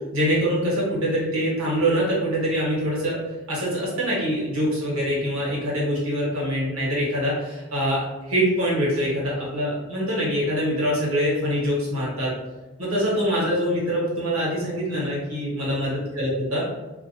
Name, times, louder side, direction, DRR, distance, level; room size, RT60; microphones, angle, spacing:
voice 1, 0.1-3.2 3.5-12.3 12.8-16.7, equal, 80° right, -5 dB, 1.0 m, -24 dB
2.4 x 2.2 x 2.7 m, 1.1 s
head